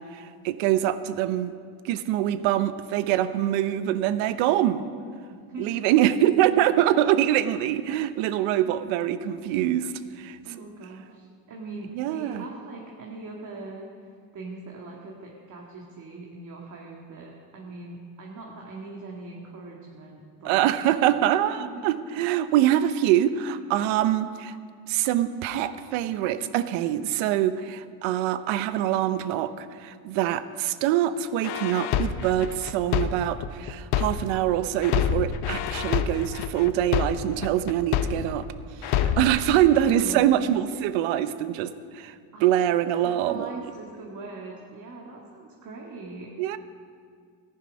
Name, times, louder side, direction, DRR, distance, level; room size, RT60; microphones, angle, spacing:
voice 1, 0.1-1.5 1.8-4.8 5.6-9.9 10.2-10.4 11.9-12.4 20.4-24.6 24.9-38.4 38.8-42.1 42.4-43.5 46.4-46.6, right 12 dB, 75° right, 13 dB, 0.8 m, -24 dB
voice 2, 5.5-6.0 10.4-20.7 21.6-21.8 39.6-40.4 42.3-42.5 43.0-46.3, right 3 dB, 40° right, -2 dB, 1.9 m, -41 dB
sound 1, 31.4-34.4 34.8-38.4 38.8-39.4, left 9 dB, 55° left, 0.8 m, -27 dB
14.5 x 11.0 x 5.3 m, 2.1 s
supercardioid pair, 105°, 47 cm